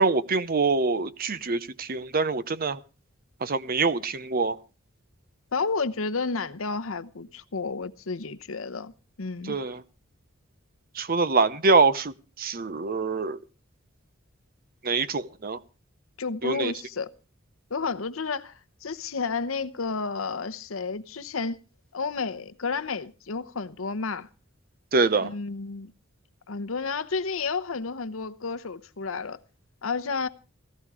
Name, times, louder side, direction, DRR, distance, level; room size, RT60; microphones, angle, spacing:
voice 1, 0.0-2.8 3.4-4.6 9.5-9.8 11.0-13.4 14.8-15.6 16.4-16.7 24.9-25.3, right 4 dB, 45° right, 0.8 m, -24 dB
voice 2, 5.5-8.9 9.2-9.6 16.2-17.1 17.7-18.5 18.8-21.6 21.9-24.3 25.2-25.9 26.5-29.4 29.8-30.3, left 4 dB, 80° left, 0.9 m, -31 dB
16.5 x 13.0 x 4.8 m
head